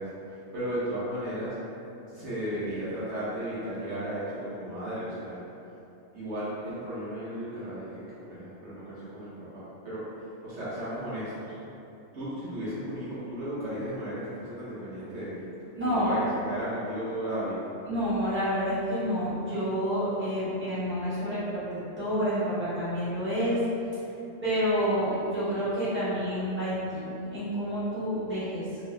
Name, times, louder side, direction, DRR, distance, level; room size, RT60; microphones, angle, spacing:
voice 1, 0.0-1.6 2.1-5.4 6.1-10.1 10.4-11.6 12.1-15.5 15.8-17.7, right 1 dB, 65° right, -10 dB, 1.1 m, -35 dB
voice 2, 15.7-16.1 17.8-23.6 24.4-28.7, equal, 10° right, -13 dB, 1.1 m, -29 dB
2.8 x 2.7 x 3.2 m, 2.8 s
omnidirectional pair, 1.3 m